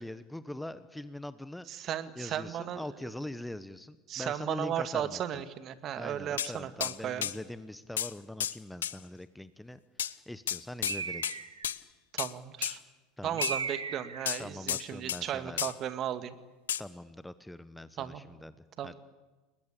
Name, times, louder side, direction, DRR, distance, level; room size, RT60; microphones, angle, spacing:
voice 1, 0.0-1.9 2.2-5.2 5.9-9.8 10.3-11.4 13.2-13.4 14.4-15.7 16.8-18.5 18.8-18.9, left 1 dB, 5° left, 14 dB, 1.1 m, -42 dB
voice 2, 1.7-2.8 4.1-7.3 12.1-12.8 13.2-16.3 18.0-18.2 18.8-18.9, right 10 dB, 40° right, 11 dB, 2.0 m, -35 dB
sound 1, 6.4-6.5 6.8-7.0 7.2-7.4 8.0-8.1 8.4-8.6 8.8-8.9 10.0-10.1 10.5-11.0 11.2-11.4 11.6-11.8 12.2-12.3 12.6-12.8 13.4-13.6 14.3-15.2 15.6-15.7 16.7-16.8, left 10 dB, 70° left, 0.8 m, -32 dB
Bird, 10.9-11.7 13.4-14.3, right 5 dB, 80° right, 2.0 m, -36 dB
30.0 x 21.0 x 8.6 m, 1.2 s
figure-of-eight pair, 75°, 0 cm